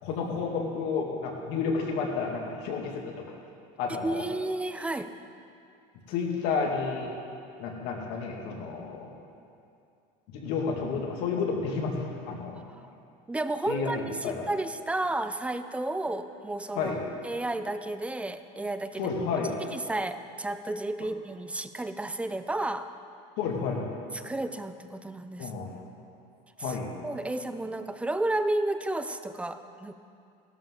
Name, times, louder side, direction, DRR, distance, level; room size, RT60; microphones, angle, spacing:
voice 1, 0.0-3.1 3.8-4.2 6.1-7.1 7.6-9.1 10.3-12.6 13.7-14.5 16.7-17.0 19.0-19.6 23.4-23.9 25.4-25.8 26.6-26.9, left 5 dB, 75° left, 0 dB, 2.2 m, -31 dB
voice 2, 4.0-5.1 13.3-16.9 17.2-19.0 19.7-22.9 24.1-25.5 27.0-29.9, right 2 dB, 5° right, 10 dB, 0.4 m, -32 dB
15.5 x 12.5 x 3.8 m, 2.5 s
cardioid pair, 150°, 18 cm